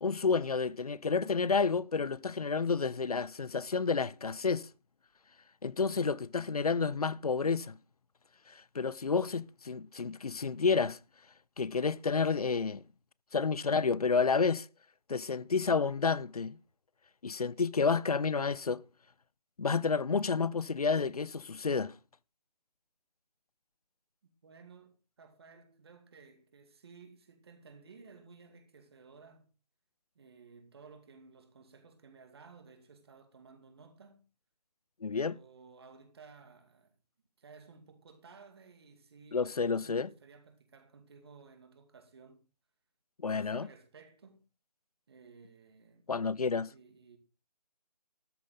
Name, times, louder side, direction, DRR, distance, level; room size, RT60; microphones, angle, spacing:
voice 1, 0.0-4.6 5.6-7.8 8.5-11.0 11.6-12.8 13.3-14.7 15.1-16.6 17.2-18.8 19.6-21.9 35.0-35.3 39.3-40.1 43.2-43.7 46.1-46.7, left 5 dB, 60° left, 0.6 m, -30 dB
voice 2, 24.4-29.5 30.1-34.2 35.1-37.0 37.4-42.4 43.2-44.4 45.1-46.1 46.7-47.2, right 5 dB, 35° right, 2.4 m, -56 dB
13.5 x 11.0 x 3.9 m
figure-of-eight pair, 155°, 21 cm